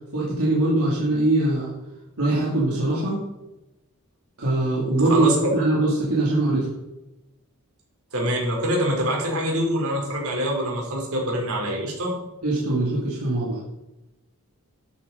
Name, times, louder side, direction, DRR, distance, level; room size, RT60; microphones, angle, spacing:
voice 1, 0.1-1.7 2.2-3.2 4.4-5.3 5.5-6.7 12.4-13.6, right 2 dB, 90° right, -6 dB, 2.8 m, -22 dB
voice 2, 5.1-5.5 8.1-12.1, equal, 70° right, -1 dB, 3.9 m, -25 dB
12.5 x 8.5 x 4.0 m, 0.96 s
head